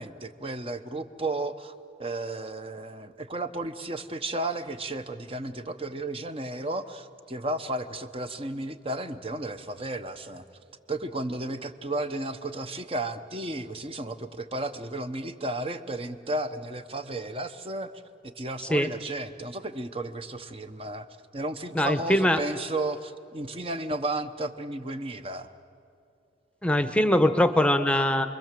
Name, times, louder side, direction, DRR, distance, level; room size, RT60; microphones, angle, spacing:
voice 1, 0.0-1.7 2.0-10.4 10.9-17.9 18.4-21.1 21.3-25.5, right 2 dB, 30° right, 9 dB, 1.0 m, -33 dB
voice 2, 21.7-22.4 26.6-28.3, left 1 dB, 5° left, 9 dB, 0.9 m, -22 dB
29.0 x 22.5 x 7.6 m, 2.5 s
head